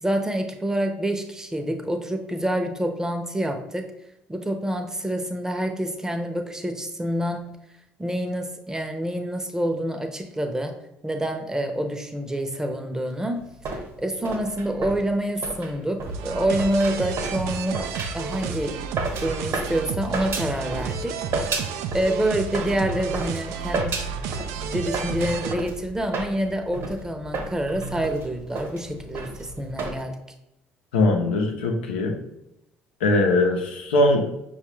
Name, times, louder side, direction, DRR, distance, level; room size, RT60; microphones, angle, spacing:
voice 1, 0.0-3.9 4.3-7.6 8.0-10.7 11.0-13.4 14.0-17.8 18.1-18.8 19.2-21.2 21.9-24.0 24.6-30.1, right 1 dB, 10° right, 5 dB, 0.7 m, -27 dB
sound 1, 13.4-21.0 21.3-22.1 22.5-30.0, right 3 dB, 55° right, 1.1 m, -33 dB
sound 2, 16.1-25.5, right 6 dB, 70° right, 0.4 m, -32 dB
voice 2, 30.9-32.1 33.0-34.4, left 2 dB, 85° left, 2 dB, 0.7 m, -21 dB
5.5 x 2.4 x 3.1 m, 0.86 s
hypercardioid pair, 55°, 5 cm